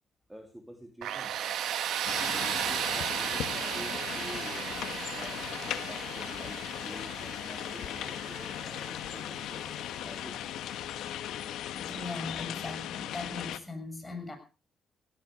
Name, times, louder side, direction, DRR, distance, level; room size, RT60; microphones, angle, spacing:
voice 1, 0.3-1.4 2.0-4.7 5.1-10.4, equal, 5° right, 3 dB, 3.2 m, -48 dB
Tools, 1.0-9.8, right 10 dB, 75° right, 1.7 m, -35 dB
sound 1, 2.0-13.6, left 11 dB, 85° left, 1.4 m, -38 dB
voice 2, 11.7-14.4, left 3 dB, 15° left, 5 dB, 6.4 m, -39 dB
17.0 x 13.5 x 5.1 m, 0.35 s
cardioid pair, 90°, 0 cm